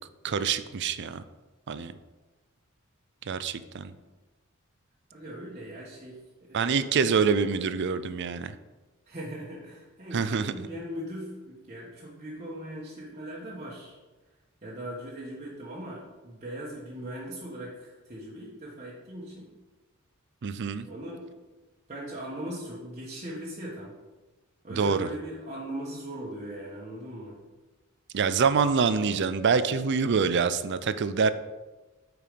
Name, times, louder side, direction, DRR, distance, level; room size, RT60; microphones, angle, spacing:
voice 1, 0.2-1.2 1.7-1.9 3.3-3.9 6.5-8.6 10.1-10.5 20.4-20.9 24.7-25.1 28.1-31.3, right 5 dB, 55° right, 13 dB, 0.5 m, -26 dB
voice 2, 5.1-6.9 9.1-14.0 14.6-19.5 20.9-21.3 21.9-24.0 24.6-27.4, right 1 dB, 35° right, -7 dB, 1.4 m, -39 dB
8.7 x 4.8 x 5.1 m, 1.2 s
head